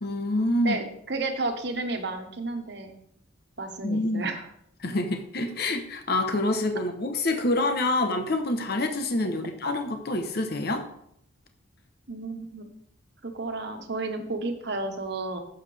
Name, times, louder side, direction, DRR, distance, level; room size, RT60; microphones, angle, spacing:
voice 1, 0.0-0.8 3.8-4.2 4.8-10.9, left 2 dB, 55° left, 6 dB, 1.0 m, -27 dB
voice 2, 0.6-2.9 3.6-4.4 4.8-4.9 12.1-12.7 13.2-15.4, right 2 dB, 60° right, 5 dB, 1.4 m, -32 dB
11.5 x 8.1 x 3.4 m, 0.71 s
head